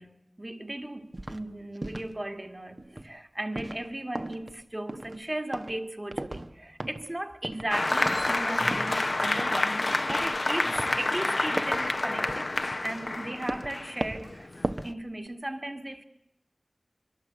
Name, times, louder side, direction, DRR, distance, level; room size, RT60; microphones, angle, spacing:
voice 1, 0.0-16.0, right 1 dB, 30° right, 1.9 m, -37 dB
sound 1, 1.1-1.4 1.8-2.1 2.8-3.1 3.5-3.9 4.1-4.6 4.9-5.3 5.5-5.8 6.1-6.5 6.8-7.1 7.4-7.7 8.1-8.4 8.7-9.1 9.4-9.6 10.1-10.4 10.7-11.0 11.6-11.9 12.3-13.2 13.5-13.8 14.0-14.3 14.6-15.0 15.3-15.4, right 1 dB, 45° right, 1.1 m, -36 dB
Applause, 7.7-14.9, left 2 dB, 55° left, 0.8 m, -28 dB
sound 2, 7.9-9.8, equal, 5° left, 1.6 m, -44 dB
24.5 x 22.5 x 7.8 m
wide cardioid pair, 50°, 0 cm